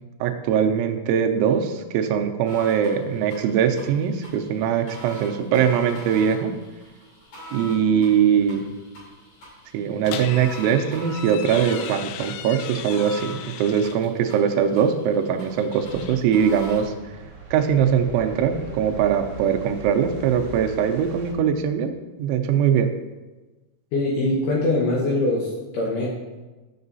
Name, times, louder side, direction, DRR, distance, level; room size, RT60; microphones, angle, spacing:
voice 1, 0.2-6.5 7.5-8.6 9.7-16.9 17.5-21.9 22.2-22.9, right 8 dB, 80° right, 5 dB, 2.9 m, -21 dB
sound 1, 2.5-16.8, left 1 dB, 50° left, 4.7 m, -43 dB
sound 2, 10.0-14.1 15.4-16.6, left 10 dB, 85° left, 3.1 m, -37 dB
sound 3, 15.8-21.3, right 2 dB, 50° right, 1.8 m, -40 dB
voice 2, 23.9-26.1, left 2 dB, 70° left, -4 dB, 2.7 m, -23 dB
12.5 x 7.1 x 2.7 m, 1.2 s
omnidirectional pair, 5.7 m